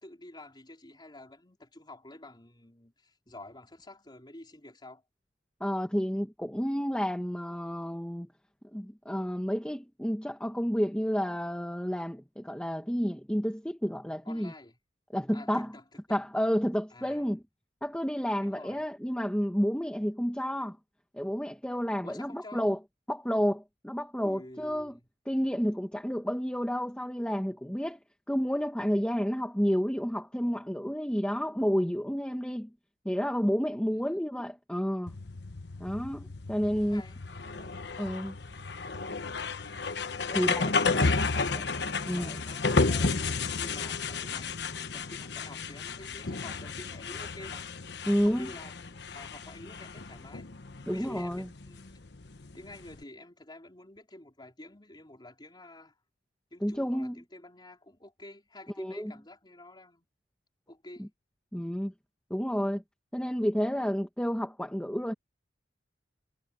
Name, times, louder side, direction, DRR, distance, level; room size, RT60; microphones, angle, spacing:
voice 1, 0.0-5.0 14.2-14.8 15.3-16.2 16.9-17.3 18.4-18.8 22.0-22.7 24.2-25.0 33.9-34.2 36.8-37.2 37.6-37.8 40.2-41.6 41.8-44.6 44.9-47.7 48.2-50.5 50.9-52.0 52.5-55.9 56.5-60.1 60.7-61.1, left 2 dB, 25° left, 4.4 m, -49 dB
voice 2, 5.6-8.3 8.7-14.5 15.1-15.7 16.1-17.4 17.8-20.8 21.1-22.8 23.1-25.0 25.3-28.0 28.3-32.7 33.0-35.1 35.8-37.0 38.0-38.3 40.3-40.6 41.5-41.6 42.1-42.4 48.1-48.5 50.9-51.5 56.6-57.1 58.8-59.1 61.0-61.1 61.5-61.9 62.3-62.8 63.1-65.1, equal, 5° left, 1.4 m, -30 dB
sound 1, 35.1-53.0, left 4 dB, 65° left, 1.2 m, -32 dB
head